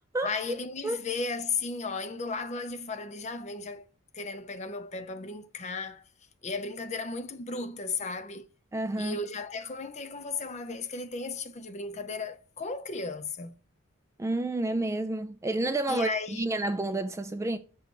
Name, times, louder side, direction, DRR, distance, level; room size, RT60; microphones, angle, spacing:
voice 1, 0.2-3.9 4.1-6.0 6.4-8.5 9.0-13.6 15.9-16.5, left 4 dB, 35° left, 0.6 m, -35 dB
voice 2, 8.7-9.2 14.2-17.6, right 2 dB, 15° right, 0.3 m, -30 dB
7.1 x 3.2 x 4.5 m
head